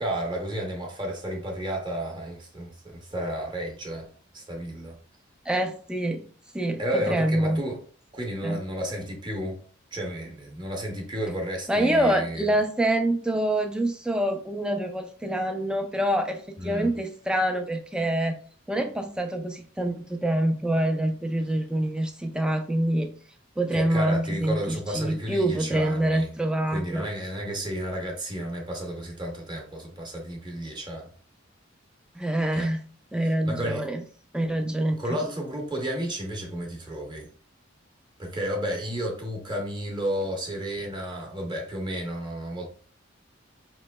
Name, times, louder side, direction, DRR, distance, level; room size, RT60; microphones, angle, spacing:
voice 1, 0.0-4.1 4.3-5.0 6.8-7.8 8.1-9.6 9.9-12.5 16.6-16.9 23.7-26.4 26.7-31.1 32.5-32.7 33.2-33.9 34.9-37.3 38.2-42.7, equal, 25° right, 0.7 m, -32 dB
voice 2, 5.5-6.2 6.5-7.6 8.4-8.6 11.7-18.4 18.7-23.1 23.6-27.1 32.2-32.8 33.1-34.0 34.3-35.0, right 1 dB, 5° right, 0.3 m, -26 dB
4.2 x 3.0 x 2.2 m
head